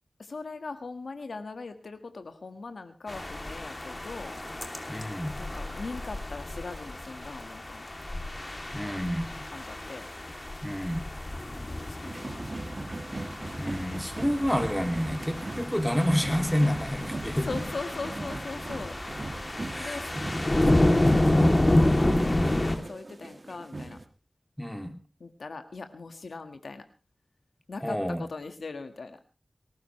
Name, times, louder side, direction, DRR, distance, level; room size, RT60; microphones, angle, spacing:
voice 1, 0.2-4.3 5.4-7.9 9.5-10.1 11.6-12.9 17.5-19.0 19.8-20.1 20.7-24.0 25.2-26.8 27.7-29.2, left 3 dB, 90° left, 8 dB, 1.6 m, -40 dB
sound 1, 3.1-22.8, left 1 dB, 30° left, 2.8 m, -29 dB
voice 2, 4.9-5.3 8.7-9.3 10.6-11.1 13.6-17.5 19.6-20.6 24.6-25.0 27.8-28.2, equal, 5° left, 7 dB, 2.7 m, -29 dB
sound 2, 12.0-24.0, right 2 dB, 45° right, 1.8 m, -39 dB
20.0 x 18.0 x 3.2 m, 0.30 s
wide cardioid pair, 65°, 0 cm